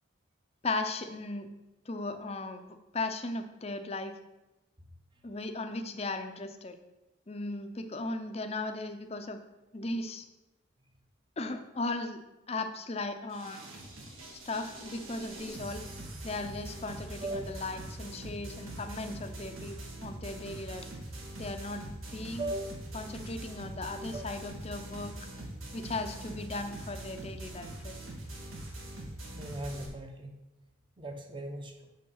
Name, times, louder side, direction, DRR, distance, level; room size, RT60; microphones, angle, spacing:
voice 1, 0.6-1.5 1.9-2.7 2.9-4.1 5.2-6.8 7.3-9.4 9.7-10.3 11.4-12.2 12.5-13.6 14.4-15.8 16.2-19.8 20.0-20.9 21.4-21.8 22.1-22.5 22.9-25.1 25.7-28.0, left 2 dB, 30° left, 7 dB, 0.6 m, -37 dB
sound 1, 13.3-29.9, right 1 dB, 85° right, 2.0 m, -43 dB
voice 2, 17.2-17.5 22.4-22.7 24.0-24.2 29.3-30.3 31.0-31.9, right 1 dB, 25° right, 4 dB, 0.8 m, -38 dB
6.5 x 5.4 x 5.5 m, 0.99 s
head